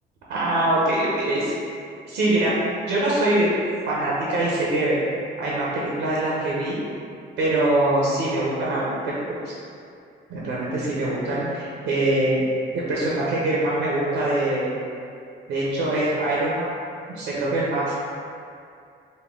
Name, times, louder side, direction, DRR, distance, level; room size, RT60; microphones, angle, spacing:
voice 1, 0.3-1.6 2.1-2.5 2.9-3.5 3.9-5.0 5.4-6.8 7.4-9.6 10.3-12.4 12.7-14.7 15.5-16.7 17.2-17.9, right 1 dB, 90° right, -6 dB, 0.7 m, -23 dB
4.0 x 2.2 x 3.5 m, 2.5 s
cardioid pair, 90°, 20 cm